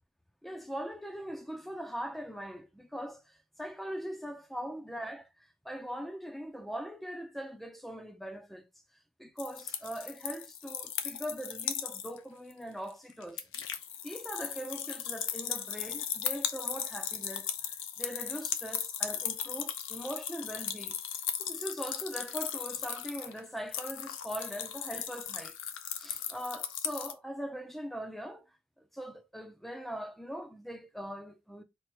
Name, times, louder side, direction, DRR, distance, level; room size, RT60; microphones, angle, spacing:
voice 1, 0.4-8.7 9.2-13.5 14.0-21.0 21.4-25.6 25.9-28.5 28.8-31.6, equal, ahead, 0.5 m, -41 dB
sound 1, 9.4-12.2 12.5-12.6 12.9-27.1, left 9 dB, 60° left, 0.7 m, -37 dB
4.4 x 2.5 x 4.5 m
head